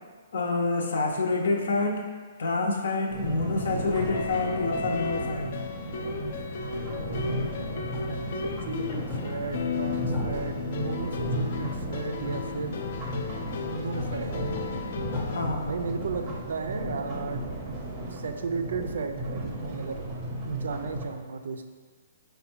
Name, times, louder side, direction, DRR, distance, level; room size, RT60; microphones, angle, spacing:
voice 1, 0.3-2.1 2.4-5.5 15.3-15.7, left 3 dB, 80° left, 2 dB, 0.7 m, -27 dB
sound 1, 3.1-21.1, right 1 dB, 20° right, 0.5 m, -35 dB
sound 2, 4.1-15.5, left 5 dB, 45° left, 0.3 m, -35 dB
voice 2, 6.7-7.3 8.4-12.8 13.7-14.3 15.6-17.4 18.1-20.1 20.4-21.7, right 4 dB, 75° right, 7 dB, 0.4 m, -34 dB
sound 3, 7.8-16.4, left 2 dB, 15° left, 0.7 m, -39 dB
5.2 x 2.2 x 4.3 m, 1.5 s
hypercardioid pair, 170°, 0 cm